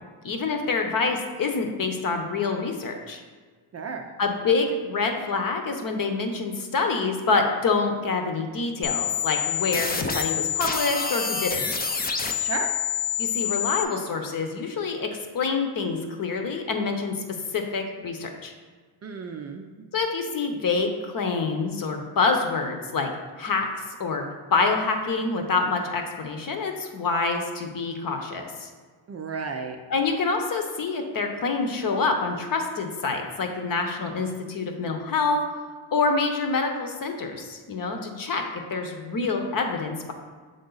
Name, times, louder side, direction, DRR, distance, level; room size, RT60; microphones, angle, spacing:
voice 1, 0.2-3.2 4.2-11.6 13.2-15.1 15.3-17.1 17.5-18.5 19.9-23.1 23.4-23.7 24.0-24.2 24.5-28.7 29.9-35.4 35.9-40.1, left 4 dB, 45° left, 4 dB, 0.9 m, -26 dB
voice 2, 3.7-4.1 12.4-12.7 19.0-19.7 29.1-29.8, right 5 dB, 35° right, 4 dB, 0.5 m, -33 dB
sound 1, 8.8-13.8, left 7 dB, 20° left, 0.5 m, -27 dB
6.8 x 3.7 x 3.9 m, 1.4 s
cardioid pair, 95°, 48 cm